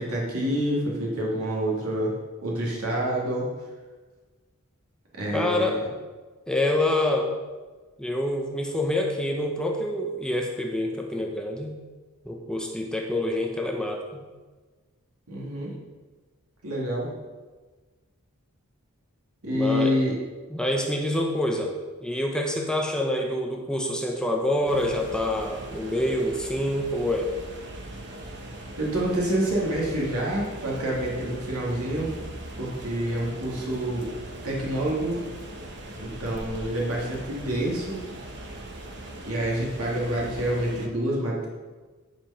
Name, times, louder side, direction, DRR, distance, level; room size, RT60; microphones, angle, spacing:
voice 1, 0.0-2.1 2.4-3.5 5.2-5.8 15.3-15.7 16.6-17.1 19.4-20.1 28.8-32.1 32.6-34.1 34.4-35.2 36.0-38.0 39.2-41.5, right 1 dB, 75° right, -4 dB, 2.5 m, -27 dB
voice 2, 5.3-5.8 6.5-7.3 8.0-11.7 12.2-14.2 19.5-20.0 20.5-27.3, left 1 dB, 5° left, 1 dB, 0.8 m, -26 dB
sound 1, 24.7-40.9, right 1 dB, 50° right, 1.1 m, -40 dB
10.5 x 5.3 x 5.7 m, 1.3 s
head